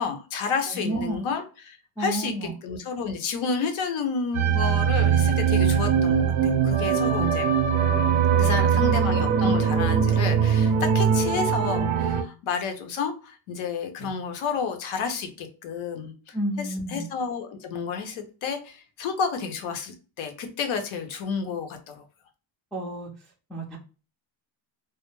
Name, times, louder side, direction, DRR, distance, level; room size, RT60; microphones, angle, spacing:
voice 1, 0.0-7.5 8.4-22.0, left 5 dB, 75° left, 5 dB, 0.8 m, -31 dB
voice 2, 0.7-1.2 2.0-2.5 7.1-7.5 8.3-9.0 14.0-14.1 16.3-17.1 22.7-23.1 23.5-23.8, right 1 dB, ahead, -3 dB, 0.3 m, -31 dB
sound 1, 4.3-12.2, right 7 dB, 75° right, 0.6 m, -21 dB
2.2 x 2.0 x 3.0 m, 0.35 s
cardioid pair, 145°, 48 cm